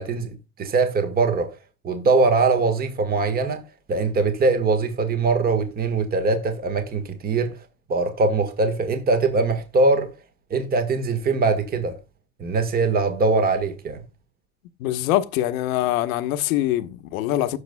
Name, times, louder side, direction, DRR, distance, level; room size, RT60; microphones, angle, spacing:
voice 1, 0.0-1.6 1.8-3.6 3.9-7.6 7.9-10.1 10.5-12.0 12.4-14.0, right 3 dB, 20° right, 1.4 m, -22 dB
voice 2, 14.8-17.6, left 14 dB, 70° left, 1.1 m, -23 dB
16.0 x 6.4 x 2.2 m
supercardioid pair, 120°, 43 cm